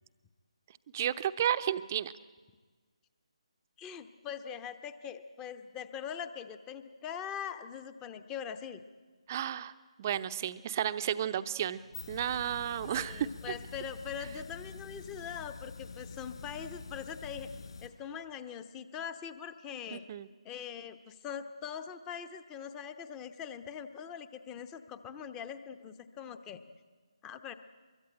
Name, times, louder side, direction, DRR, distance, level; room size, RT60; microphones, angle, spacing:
voice 1, 0.9-2.1 9.3-9.7 10.0-11.8 12.1-13.3 19.9-20.3, right 10 dB, 30° right, 12 dB, 0.8 m, -32 dB
voice 2, 3.8-8.8 12.9-20.0 20.4-26.6 27.2-27.5, left 8 dB, 15° left, 11 dB, 0.9 m, -42 dB
sound 1, 11.7-17.9, left 4 dB, 55° left, 4.9 m, -46 dB
23.5 x 23.0 x 8.9 m, 1.4 s
figure-of-eight pair, 150°, 3 cm